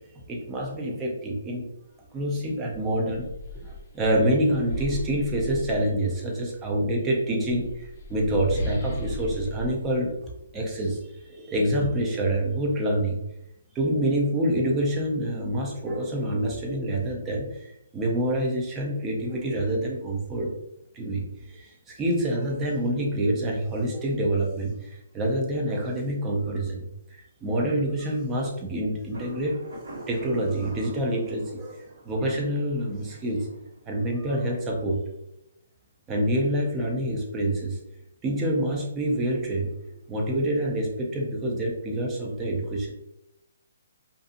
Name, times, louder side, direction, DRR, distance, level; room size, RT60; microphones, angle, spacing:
voice 1, 0.3-1.7 2.1-3.3 3.5-10.1 10.5-11.0 11.2-13.2 13.7-20.5 20.9-26.9 27.4-29.6 30.1-33.5 33.9-35.0 36.1-37.8 38.2-39.7 40.1-42.9, right 1 dB, 15° right, -1 dB, 0.5 m, -27 dB
sound 1, 2.1-2.3 2.7-6.3 7.3-10.9, left 1 dB, 45° left, 0.6 m, -36 dB
Thunder, 29.1-34.8, right 1 dB, 85° right, 1.1 m, -46 dB
2.5 x 2.5 x 2.5 m, 0.85 s
hypercardioid pair, 155°, 0 cm